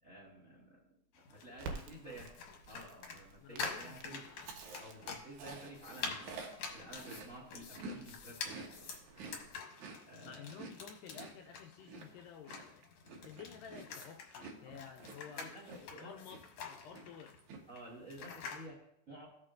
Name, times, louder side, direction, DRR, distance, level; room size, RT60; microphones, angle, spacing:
voice 1, 0.0-2.3 2.7-4.4 4.8-8.9 10.1-10.5 14.6-14.8 15.3-16.2 17.7-19.3, right 1 dB, 35° right, -3 dB, 1.4 m, -52 dB
sound 1, 1.1-18.7, left 5 dB, 65° left, 1.8 m, -47 dB
Crackle, 1.6-9.5, right 4 dB, 85° right, 2.8 m, -52 dB
voice 2, 3.4-4.0 4.3-4.5 10.2-12.8 13.2-15.5 15.8-16.4 16.7-17.4, left 7 dB, 80° left, 4 dB, 2.0 m, -52 dB
Chewing mastication, 4.3-8.0 8.3-16.0 16.3-16.6 16.9-17.6, right 3 dB, 65° right, 2.1 m, -50 dB
15.0 x 6.5 x 2.5 m, 0.75 s
omnidirectional pair, 4.2 m